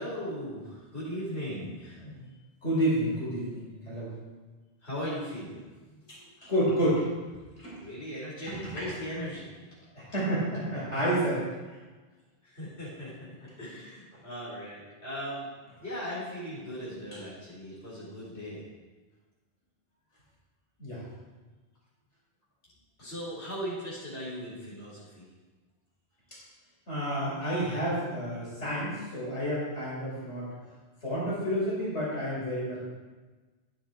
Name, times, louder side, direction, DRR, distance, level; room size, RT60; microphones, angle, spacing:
voice 1, 0.0-2.0 4.8-5.6 6.1-6.3 7.8-9.5 12.4-13.1 13.6-15.5 15.8-18.6 23.0-25.3, equal, 70° left, -7 dB, 4.9 m, -38 dB
voice 2, 2.6-4.1 6.4-7.0 7.6-7.8 8.5-8.6 9.9-11.4 11.7-11.8 20.8-21.0 26.9-30.5 31.0-32.8, equal, 85° left, -7 dB, 5.1 m, -30 dB
14.5 x 9.7 x 4.5 m, 1.3 s
omnidirectional pair, 1.1 m